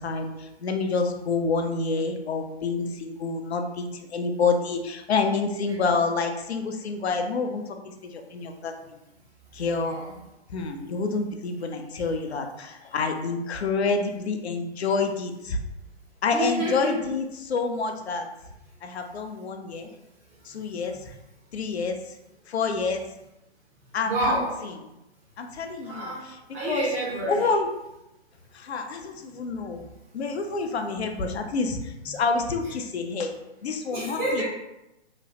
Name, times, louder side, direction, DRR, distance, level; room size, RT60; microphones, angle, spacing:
voice 1, 0.0-9.0 9.5-10.0 10.5-15.6 16.2-18.3 18.8-19.9 20.4-21.1 21.5-22.2 22.5-23.1 23.9-24.7 25.4-26.4 26.7-26.9 27.3-27.7 28.5-29.9 30.1-33.3 33.6-34.4, left 4 dB, 75° left, 5 dB, 0.5 m, -28 dB
voice 2, 9.7-10.1 11.9-12.0 16.3-17.0 20.4-20.5 24.0-24.6 25.8-27.4 33.9-34.4, right 1 dB, 15° right, -7 dB, 0.4 m, -29 dB
2.9 x 2.0 x 2.8 m, 0.91 s
figure-of-eight pair, 130°, 33 cm